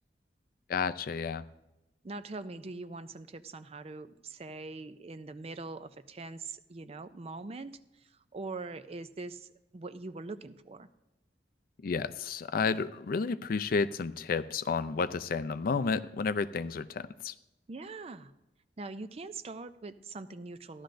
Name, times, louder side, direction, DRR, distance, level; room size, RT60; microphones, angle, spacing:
voice 1, 0.7-1.4 11.8-17.3, left 5 dB, 55° left, 14 dB, 0.4 m, -31 dB
voice 2, 2.0-10.9 17.7-18.3 18.8-20.8, right 3 dB, 35° right, 12 dB, 0.5 m, -43 dB
14.5 x 11.5 x 2.6 m, 0.95 s
head